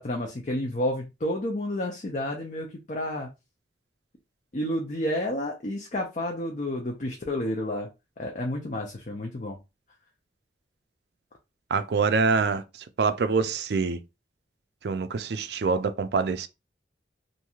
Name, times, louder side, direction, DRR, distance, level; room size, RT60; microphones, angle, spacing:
voice 1, 0.0-3.3 4.5-7.9 8.2-9.6, left 1 dB, 40° left, 0.5 m, -30 dB
voice 2, 11.7-12.6 13.0-14.0 14.8-16.5, right 4 dB, 60° right, 0.4 m, -25 dB
3.1 x 2.6 x 2.3 m
head